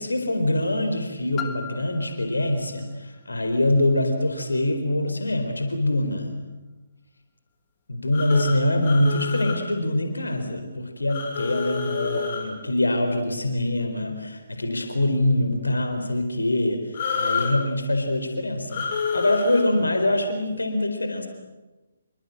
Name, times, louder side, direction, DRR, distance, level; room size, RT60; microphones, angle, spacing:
voice 1, 0.0-6.3 7.9-21.3, left 1 dB, 75° left, 6 dB, 4.2 m, -24 dB
Piano, 1.4-6.8 7.5-7.6, left 8 dB, 15° left, 1.6 m, -42 dB
sound 1, 8.1-9.6 11.1-12.5 16.9-17.5 18.7-19.6, left 6 dB, 40° left, 6.2 m, -29 dB
27.0 x 24.5 x 7.9 m, 1.1 s
figure-of-eight pair, 140°, 0 cm